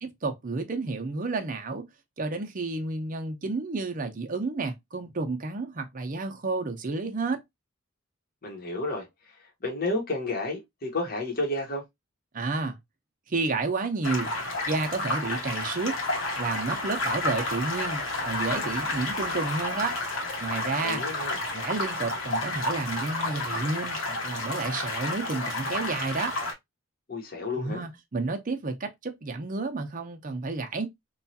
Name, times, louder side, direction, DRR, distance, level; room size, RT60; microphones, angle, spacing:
voice 1, 0.0-1.8 2.2-7.4 12.3-12.8 13.3-14.3 14.7-15.9 16.4-20.0 20.4-21.0 21.5-26.3 27.6-30.9, right 3 dB, 40° right, 0.6 m, -31 dB
voice 2, 8.4-9.0 9.6-11.8 20.8-21.4 27.1-27.8, left 2 dB, 50° left, 1.0 m, -31 dB
sound 1, 14.0-26.5, left 2 dB, 85° left, 1.0 m, -31 dB
3.0 x 2.3 x 2.7 m
head